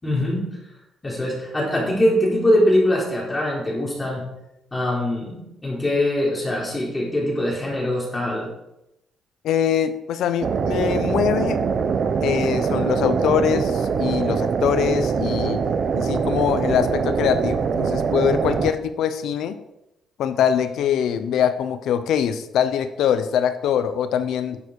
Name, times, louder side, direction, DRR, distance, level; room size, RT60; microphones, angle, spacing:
voice 1, 0.0-0.5 1.0-4.2 4.7-8.5, left 1 dB, 20° left, -4 dB, 4.0 m, -22 dB
voice 2, 9.4-11.6 12.2-15.6 15.9-19.6 20.2-24.6, left 9 dB, 80° left, 11 dB, 0.8 m, -23 dB
sound 1, 10.4-18.7, right 6 dB, 50° right, 0.9 m, -23 dB
11.0 x 7.3 x 4.8 m, 0.88 s
cardioid pair, 90°, 0 cm